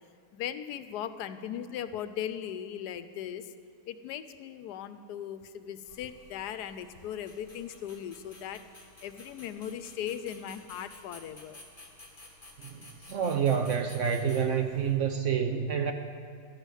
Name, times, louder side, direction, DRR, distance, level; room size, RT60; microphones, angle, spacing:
voice 1, 0.3-3.5 3.9-8.6 9.0-11.6, left 9 dB, 85° left, 11 dB, 1.2 m, -38 dB
sound 1, 5.8-15.0, left 2 dB, 25° left, 1.6 m, -53 dB
voice 2, 12.6-15.9, right 7 dB, 65° right, 6 dB, 0.8 m, -28 dB
11.5 x 8.2 x 6.3 m, 2.5 s
omnidirectional pair, 1.7 m